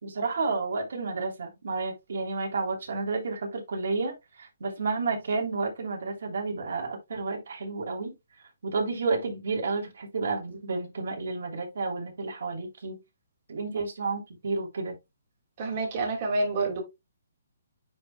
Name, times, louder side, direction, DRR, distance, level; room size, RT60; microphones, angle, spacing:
voice 1, 0.0-8.1 8.6-13.0 13.5-14.9, right 3 dB, 70° right, 3.1 m, -31 dB
voice 2, 15.6-16.8, right 2 dB, 40° right, 3.3 m, -28 dB
9.4 x 4.5 x 2.3 m
hypercardioid pair, 160°, 0 cm